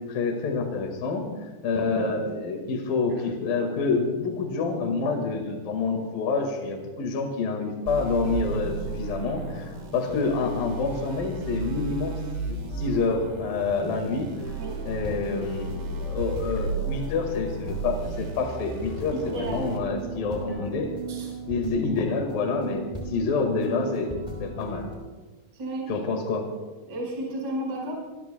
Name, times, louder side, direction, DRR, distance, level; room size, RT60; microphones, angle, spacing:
voice 1, 0.0-12.2 12.5-14.3 14.8-20.9 21.5-24.1 24.4-24.9 25.9-26.5, left 4 dB, 60° left, 2 dB, 3.3 m, -27 dB
sound 1, 7.9-19.8, right 3 dB, 70° right, 4.8 m, -34 dB
sound 2, 14.4-24.9, right 2 dB, 5° left, 4.3 m, -37 dB
voice 2, 19.1-19.7 20.5-20.6 21.1-21.3 25.5-26.0 26.9-27.9, right 1 dB, 45° right, -2 dB, 6.1 m, -33 dB
27.5 x 21.0 x 2.3 m, 1.3 s
omnidirectional pair, 5.1 m